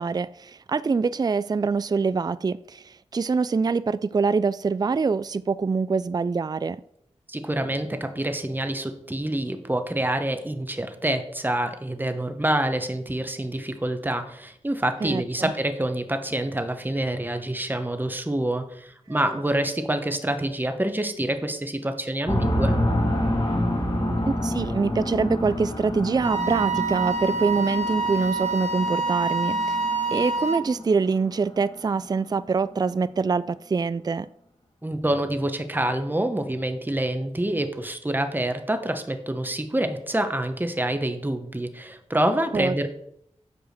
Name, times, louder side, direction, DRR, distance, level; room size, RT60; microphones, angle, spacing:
voice 1, 0.0-6.8 15.0-15.5 24.3-29.8 30.1-34.3 42.5-42.9, right 4 dB, 35° right, 0.3 m, -25 dB
voice 2, 7.3-22.8 34.8-42.9, right 1 dB, 15° right, 1.1 m, -27 dB
sound 1, 22.3-32.7, left 1 dB, 40° left, 2.2 m, -28 dB
Wind instrument woodwind instrument, 26.2-30.7, right 3 dB, 75° right, 1.0 m, -26 dB
8.1 x 4.9 x 6.5 m
cardioid pair, 50°, 12 cm